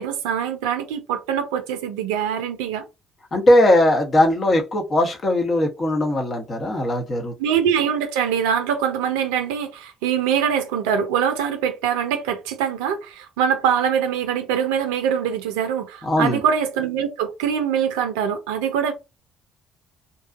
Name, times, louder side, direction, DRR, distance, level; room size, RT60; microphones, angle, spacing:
voice 1, 0.0-2.8 7.4-18.9, right 8 dB, 75° right, 0.4 m, -23 dB
voice 2, 3.3-7.3 16.0-16.4, left 1 dB, 40° left, 0.8 m, -19 dB
2.6 x 2.3 x 2.4 m
hypercardioid pair, 45°, 0 cm